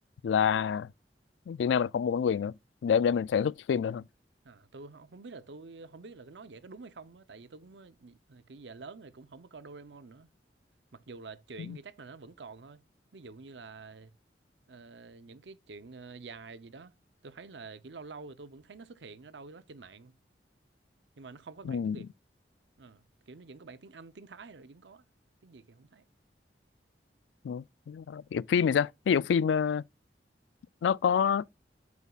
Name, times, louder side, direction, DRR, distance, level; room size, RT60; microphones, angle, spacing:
voice 1, 0.2-0.9 1.5-2.5 2.8-4.0 11.7-11.8 21.7-22.0 27.4-29.8 30.8-31.4, left 7 dB, 85° left, 0.3 m, -27 dB
voice 2, 4.4-10.3 10.9-12.8 13.1-14.1 14.7-16.9 17.2-20.1 21.2-22.1 22.8-25.0 25.4-26.0, right 4 dB, 75° right, 0.7 m, -48 dB
8.3 x 7.1 x 2.4 m
head